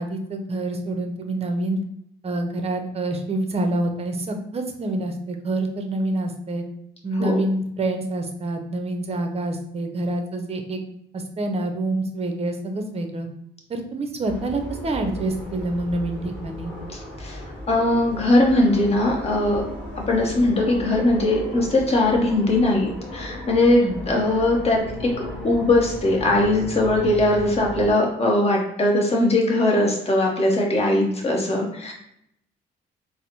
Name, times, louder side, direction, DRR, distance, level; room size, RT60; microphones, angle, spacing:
voice 1, 0.0-1.8 2.2-6.6 7.0-10.8 11.1-13.3 13.7-16.7 23.7-24.0 30.8-31.2, right 2 dB, 30° right, 5 dB, 0.6 m, -27 dB
sound 1, 14.2-27.9, left 1 dB, 5° left, 1.1 m, -35 dB
voice 2, 17.7-19.6 20.1-23.8 24.1-25.1 25.4-31.9, left 2 dB, 30° left, -1 dB, 0.9 m, -20 dB
4.0 x 2.0 x 2.9 m, 0.74 s
cardioid pair, 90°, 20 cm